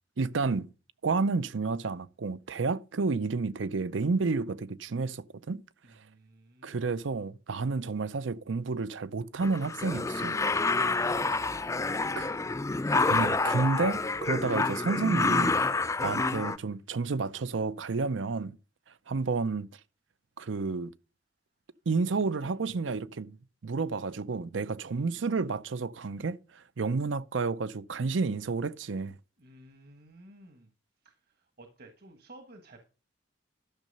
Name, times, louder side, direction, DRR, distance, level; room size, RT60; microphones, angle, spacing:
voice 1, 0.2-0.7 1.0-5.6 6.6-10.4 12.2-12.3 13.0-15.6 16.0-18.6 19.1-19.7 20.4-20.9 21.9-23.4 23.6-29.1, right 4 dB, 90° right, 0.6 m, -30 dB
voice 2, 5.8-6.8 11.1-11.6 12.0-13.2 22.4-22.7 24.8-25.5 29.4-30.7 31.0-32.9, right 2 dB, 55° right, 1.4 m, -55 dB
sound 1, 9.4-16.6, left 3 dB, 15° left, 0.4 m, -28 dB
12.0 x 6.5 x 5.4 m
head